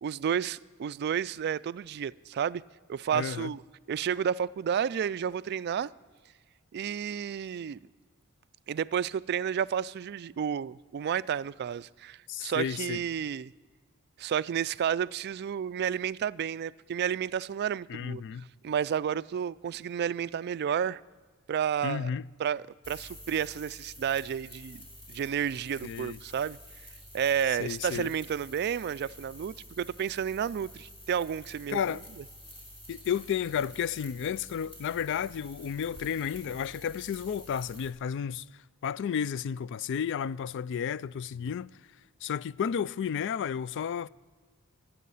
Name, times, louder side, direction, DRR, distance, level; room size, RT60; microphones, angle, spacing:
voice 1, 0.0-2.6 2.9-3.6 3.9-5.9 6.7-7.8 8.7-13.5 14.2-18.2 18.6-21.0 21.5-22.1 22.4-26.6 27.1-31.8, right 8 dB, 50° right, 0.3 m, -31 dB
voice 2, 3.1-3.5 12.3-13.0 17.9-18.5 21.8-22.2 25.8-26.2 27.5-28.1 31.7-32.0 32.9-41.7 42.2-44.1, left 8 dB, 60° left, 0.3 m, -32 dB
sound 1, 22.8-37.9, equal, 25° left, 3.9 m, -49 dB
24.5 x 8.5 x 5.6 m
head